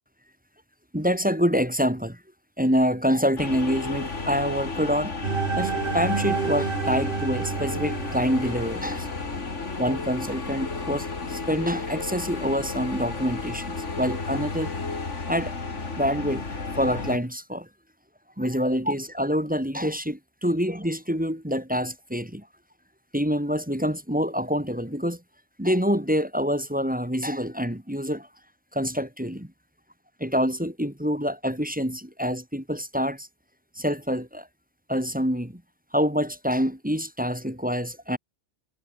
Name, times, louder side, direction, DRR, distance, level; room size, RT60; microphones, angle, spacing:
voice 1, 0.9-2.2 2.6-5.2 5.5-9.1 9.8-14.7 15.3-15.5 16.0-17.7 18.4-22.5 23.1-25.2 25.6-28.3 28.7-29.5 30.2-33.3 33.8-34.5 34.9-35.6 35.9-38.2, equal, 5° right, 1.9 m, -26 dB
sound 1, 3.4-17.2, left 3 dB, 70° left, 3.1 m, -33 dB
sound 2, 5.2-9.2, right 5 dB, 50° right, 1.4 m, -29 dB
omnidirectional pair, 1.3 m